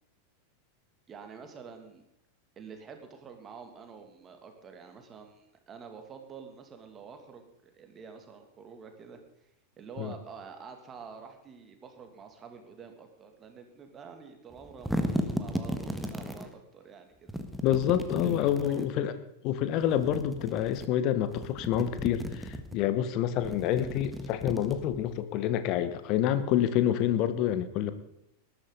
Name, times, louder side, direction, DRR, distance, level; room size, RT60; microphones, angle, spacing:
voice 1, 1.1-2.0 2.6-9.2 9.8-17.4 18.2-19.2, right 6 dB, 25° right, 5 dB, 2.5 m, -48 dB
sound 1, 14.5-16.5 17.3-18.9 19.8-20.9 21.2-22.8 23.3-25.1, equal, ahead, 1.5 m, -35 dB
voice 2, 17.6-19.1 19.4-27.9, left 10 dB, 40° left, 12 dB, 1.2 m, -27 dB
19.5 x 13.0 x 4.0 m, 0.81 s
figure-of-eight pair, 90°, 0 cm